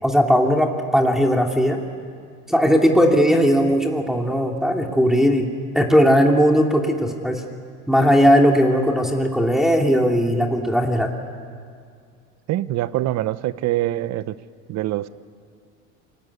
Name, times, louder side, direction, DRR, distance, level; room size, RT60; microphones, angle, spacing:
voice 1, 0.0-1.8 2.5-5.5 5.7-7.4 7.9-11.1, equal, ahead, 1 dB, 2.7 m, -18 dB
voice 2, 12.5-14.4 14.7-15.1, right 15 dB, 50° right, 16 dB, 0.9 m, -24 dB
28.0 x 20.5 x 8.4 m, 2.2 s
supercardioid pair, 100°, 35 cm